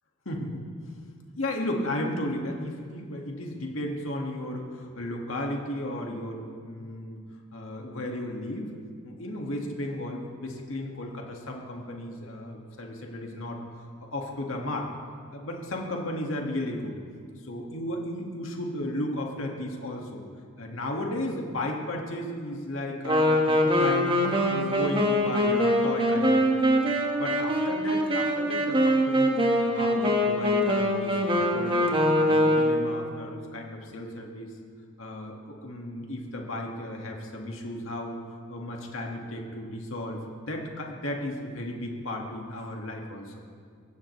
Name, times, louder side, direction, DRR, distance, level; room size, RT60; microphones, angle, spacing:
voice 1, 0.3-0.7 1.4-7.2 7.5-8.7 9.0-14.9 15.3-17.0 17.4-20.2 20.6-24.1 24.5-26.9 27.2-29.3 29.6-31.8 32.1-34.5 35.0-38.2 38.5-43.3, left 1 dB, 75° left, 0 dB, 2.1 m, -34 dB
Wind instrument woodwind instrument, 23.1-33.0, equal, 25° right, 1.7 m, -23 dB
23.5 x 16.5 x 3.3 m, 2.1 s
head